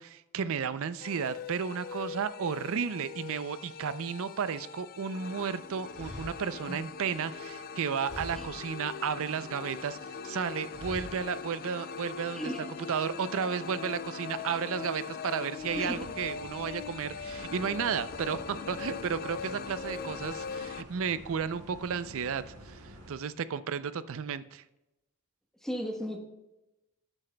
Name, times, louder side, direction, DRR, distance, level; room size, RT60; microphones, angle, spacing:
voice 1, 0.0-12.4 12.9-22.8 23.1-24.6, right 6 dB, 65° right, 14 dB, 0.4 m, -33 dB
sound 1, 1.0-20.8, left 6 dB, 40° left, 0.4 m, -41 dB
sound 2, 5.4-5.5 5.9-7.8 8.1-8.8 9.1-10.0 10.7-11.4, equal, 35° right, 2.5 m, -46 dB
voice 2, 12.3-12.7 15.8-16.1 25.6-26.2, equal, ahead, 2 dB, 1.1 m, -35 dB
sound 3, 15.6-23.1, equal, 85° right, 1.8 m, -49 dB
13.5 x 8.8 x 2.2 m, 0.96 s
head